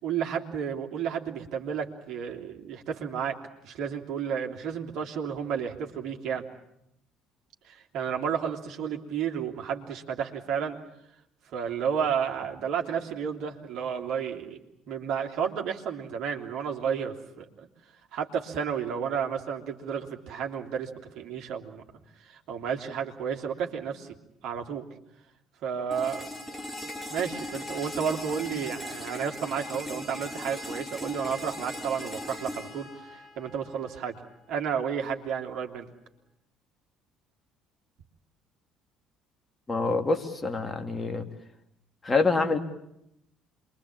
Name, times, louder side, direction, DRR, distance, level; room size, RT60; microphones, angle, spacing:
voice 1, 0.0-3.4 3.6-6.4 7.6-10.8 11.5-14.6 14.9-17.7 18.1-21.8 22.2-24.2 24.4-24.8 25.6-26.6 27.1-34.2 34.5-35.9, right 7 dB, 55° right, 2 dB, 3.1 m, -32 dB
sound 1, 25.9-33.9, left 1 dB, 10° left, 5.5 m, -38 dB
voice 2, 39.7-41.3 42.0-42.6, left 3 dB, 25° left, 6 dB, 3.1 m, -26 dB
27.5 x 23.0 x 8.8 m, 0.81 s
figure-of-eight pair, 55°, 0 cm